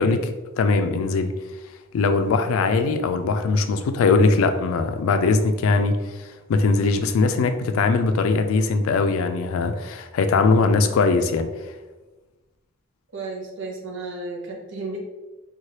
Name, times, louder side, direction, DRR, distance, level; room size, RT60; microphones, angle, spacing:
voice 1, 0.0-1.3 1.9-11.5, left 3 dB, 80° left, 8 dB, 0.3 m, -21 dB
voice 2, 13.1-15.0, right 3 dB, 60° right, -1 dB, 0.6 m, -33 dB
3.0 x 2.3 x 2.8 m, 1.2 s
head